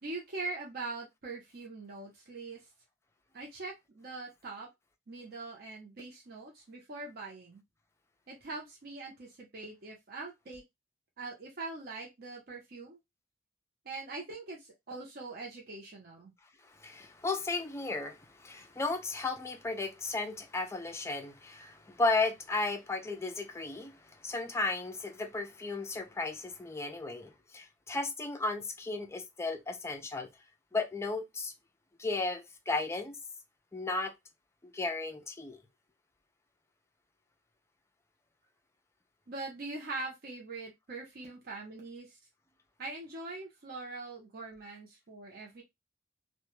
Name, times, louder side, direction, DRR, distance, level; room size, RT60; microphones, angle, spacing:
voice 1, 0.0-2.6 3.3-4.7 5.1-7.6 8.3-10.6 11.2-13.0 13.9-16.3 39.3-42.2 42.8-45.6, right 3 dB, 55° right, 0.6 m, -42 dB
voice 2, 16.7-30.3 30.7-31.5 32.0-33.2 33.7-34.1 34.6-35.6, left 3 dB, 15° left, 0.4 m, -34 dB
2.1 x 2.1 x 2.9 m
head